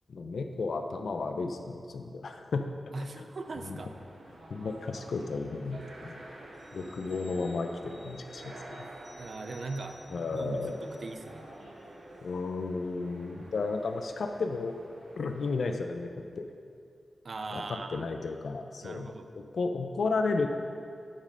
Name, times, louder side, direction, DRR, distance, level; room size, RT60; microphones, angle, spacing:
voice 1, 0.1-2.6 3.1-3.2 3.7-3.8 4.5-6.2 6.7-8.5 10.1-10.8 12.2-14.7 15.2-16.4 17.5-20.5, left 3 dB, 70° left, 5 dB, 0.4 m, -33 dB
voice 2, 2.9-3.9 9.2-10.0 10.3-11.5 17.2-18.0 18.8-19.3, right 3 dB, 50° right, 7 dB, 0.5 m, -39 dB
sound 1, 3.4-15.6, right 1 dB, 85° right, 1.5 m, -49 dB
sound 2, 6.5-11.6 12.0-12.1, equal, 5° right, 1.4 m, -58 dB
8.6 x 5.3 x 5.2 m, 2.4 s
wide cardioid pair, 170°, 0 cm